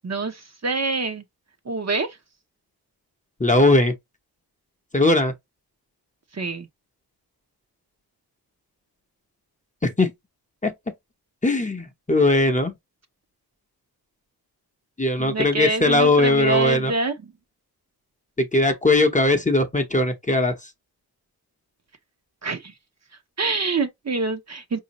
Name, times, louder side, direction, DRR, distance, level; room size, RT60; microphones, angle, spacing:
voice 1, 0.0-1.2 1.7-2.2 6.3-6.7 15.2-17.3 22.4-22.7 23.4-24.8, right 3 dB, 40° right, 0.7 m, -26 dB
voice 2, 3.4-3.9 4.9-5.3 9.8-10.1 10.6-10.7 11.4-12.7 15.0-16.9 18.4-20.6, left 2 dB, 20° left, 0.7 m, -19 dB
4.9 x 2.7 x 2.9 m
wide cardioid pair, 105°, 40 cm